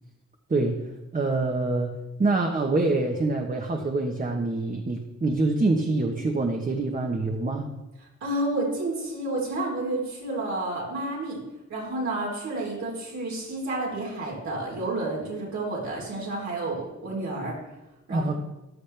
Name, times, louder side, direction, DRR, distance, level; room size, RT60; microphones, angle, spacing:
voice 1, 0.5-0.8 1.1-1.9 2.2-7.7 18.1-18.4, right 2 dB, 30° right, 2 dB, 1.2 m, -25 dB
voice 2, 8.2-11.4 11.7-17.5 18.1-18.3, right 2 dB, 70° right, -4 dB, 3.9 m, -30 dB
14.5 x 11.5 x 3.4 m, 1.0 s
wide cardioid pair, 125°, 29 cm